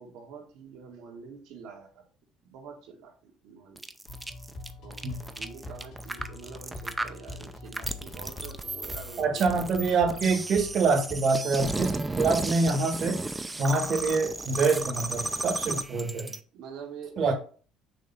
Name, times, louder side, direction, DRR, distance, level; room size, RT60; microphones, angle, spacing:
voice 1, 0.0-2.1 2.4-3.9 4.8-9.6 16.5-17.3, right 6 dB, 80° right, 1 dB, 2.0 m, -45 dB
sound 1, 3.8-16.4, right 2 dB, 15° right, 0.6 m, -34 dB
sound 2, 4.1-11.2, left 2 dB, 65° left, 3.4 m, -44 dB
voice 2, 9.2-13.2 13.6-16.3 17.2-17.3, right 4 dB, 55° right, 3 dB, 1.5 m, -25 dB
6.3 x 3.1 x 5.6 m, 0.40 s
cardioid pair, 100°, 0 cm